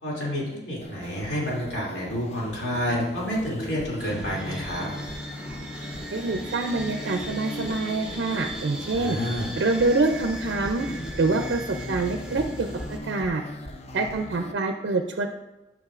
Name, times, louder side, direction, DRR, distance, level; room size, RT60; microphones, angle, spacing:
voice 1, 0.0-4.9 8.9-9.5, equal, 75° left, -6 dB, 2.6 m, -29 dB
sound 1, 0.8-14.5, left 1 dB, 35° left, 0.5 m, -39 dB
sound 2, 4.0-13.0, right 1 dB, 5° right, 0.9 m, -38 dB
voice 2, 6.1-9.2 9.6-10.9 11.2-13.4 13.9-15.3, right 3 dB, 70° right, 5 dB, 0.4 m, -26 dB
9.7 x 6.0 x 2.5 m, 1.0 s
head